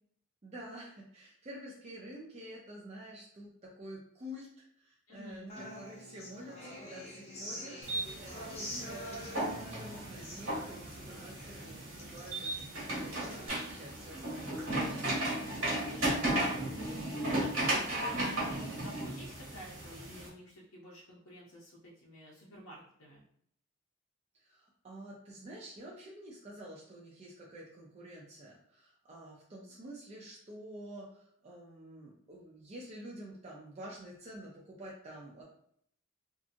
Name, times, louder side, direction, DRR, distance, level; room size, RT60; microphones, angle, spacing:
voice 1, 0.4-15.2 24.4-35.4, equal, 30° right, -4 dB, 0.4 m, -49 dB
voice 2, 5.1-5.5 15.9-23.2, right 1 dB, 70° left, -4 dB, 0.6 m, -48 dB
Human voice / Acoustic guitar, 5.5-13.5, equal, 30° left, 0.6 m, -46 dB
sound 1, 7.8-20.3, right 1 dB, 80° right, 1.3 m, -35 dB
2.7 x 2.4 x 2.5 m, 0.66 s
head